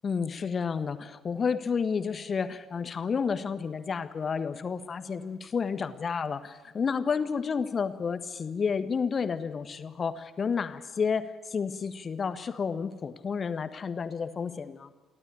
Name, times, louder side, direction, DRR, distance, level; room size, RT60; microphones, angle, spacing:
voice 1, 0.0-14.9, left 6 dB, 35° left, 11 dB, 1.5 m, -31 dB
29.5 x 13.0 x 8.6 m, 1.2 s
figure-of-eight pair, 50°, 0 cm